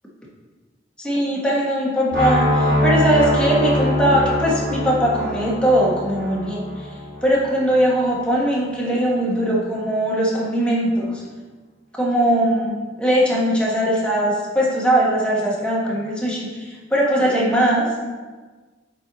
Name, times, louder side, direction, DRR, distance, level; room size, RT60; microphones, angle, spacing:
voice 1, 1.0-6.6 7.2-11.2 11.9-12.7 13.0-17.9, right 1 dB, 5° left, -5 dB, 1.3 m, -20 dB
sound 1, 2.1-8.0, left 1 dB, 55° right, 1.7 m, -23 dB
7.5 x 4.4 x 4.0 m, 1.4 s
head